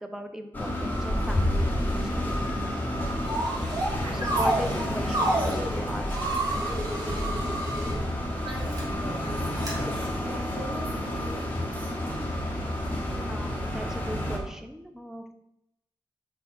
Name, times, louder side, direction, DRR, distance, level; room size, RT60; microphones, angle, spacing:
voice 1, 0.0-2.4 4.2-6.1 6.5-6.8 13.2-15.3, equal, 5° right, 5 dB, 0.6 m, -38 dB
sound 1, 0.5-14.4, left 1 dB, 20° left, 1.2 m, -30 dB
sound 2, 3.2-3.9 4.2-5.6 6.1-7.9 8.6-8.8 9.6-9.7, right 2 dB, 45° right, 2.0 m, -29 dB
voice 2, 3.9-4.3 5.4-5.8 8.4-11.9, right 1 dB, 65° right, -4 dB, 1.7 m, -41 dB
5.8 x 4.0 x 4.3 m, 0.78 s
wide cardioid pair, 115°, 9 cm